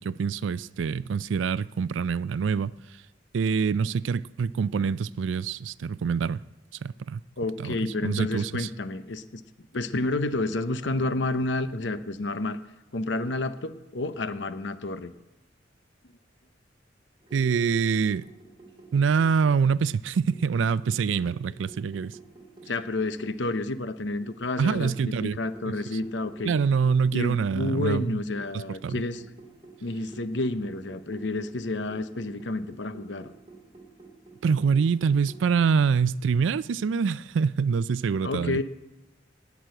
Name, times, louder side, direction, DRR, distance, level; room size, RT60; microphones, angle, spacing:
voice 1, 0.0-3.0 3.3-6.4 6.8-7.2 7.6-8.7 17.3-18.3 18.9-22.2 24.6-25.4 26.4-28.1 28.5-29.0 34.4-38.6, right 6 dB, 85° right, 0.4 m, -25 dB
voice 2, 7.4-9.4 9.7-12.6 12.9-15.1 22.7-26.5 27.1-29.2 29.8-33.3 38.2-38.6, left 2 dB, 70° left, 0.8 m, -30 dB
sound 1, 17.2-19.9 20.3-23.4 23.7-23.8 24.2-27.7 28.3-35.5, right 3 dB, 25° right, 2.3 m, -51 dB
18.5 x 6.2 x 7.7 m
head